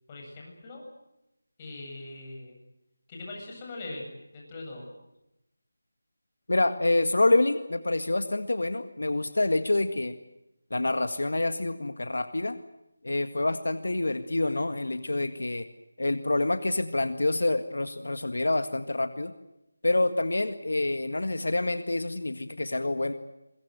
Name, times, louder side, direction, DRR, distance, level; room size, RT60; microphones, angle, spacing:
voice 1, 0.1-0.8 1.6-2.6 3.1-4.9, left 2 dB, 20° left, -1 dB, 7.8 m, -41 dB
voice 2, 6.5-10.2 10.7-12.6 13.0-15.7 16.0-19.3 19.8-23.1, left 2 dB, 75° left, 10 dB, 1.8 m, -27 dB
25.0 x 22.0 x 8.0 m, 0.91 s
figure-of-eight pair, 170°, 0 cm